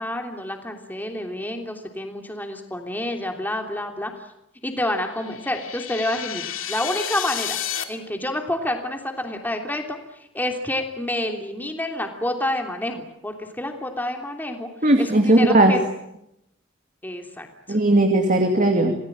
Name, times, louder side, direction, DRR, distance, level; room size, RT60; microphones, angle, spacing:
voice 1, 0.0-4.1 4.6-7.6 7.9-10.0 10.3-14.7 15.0-15.8 17.0-17.8, left 1 dB, 10° left, 3 dB, 3.1 m, -28 dB
sound 1, 5.1-7.8, left 10 dB, 90° left, 2.7 m, -31 dB
voice 2, 14.8-15.8 17.7-19.0, right 1 dB, 40° right, 4 dB, 2.6 m, -17 dB
28.5 x 19.5 x 8.9 m, 0.84 s
head